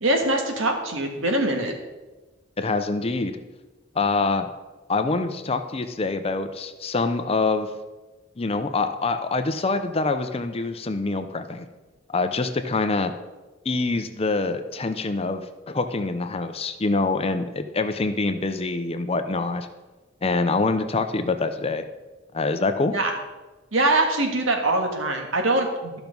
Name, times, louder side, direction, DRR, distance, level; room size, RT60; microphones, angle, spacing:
voice 1, 0.0-1.7 22.9-23.1 23.7-26.0, right 2 dB, 80° right, 3 dB, 1.7 m, -23 dB
voice 2, 2.6-3.4 3.9-4.5 4.9-7.7 8.4-11.7 12.1-13.1 13.6-19.7 20.2-21.8 22.3-22.9, left 3 dB, 30° left, 9 dB, 0.6 m, -25 dB
12.5 x 5.9 x 5.3 m, 1.2 s
head